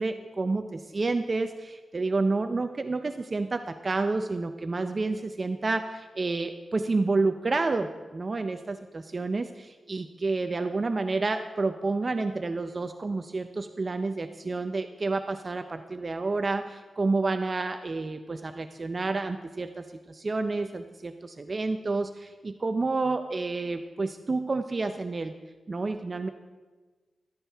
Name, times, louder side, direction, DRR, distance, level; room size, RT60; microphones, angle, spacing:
voice 1, 0.0-25.3 25.7-26.3, right 3 dB, 35° right, 7 dB, 0.5 m, -29 dB
14.5 x 13.0 x 3.4 m, 1.3 s
wide cardioid pair, 135°, 0 cm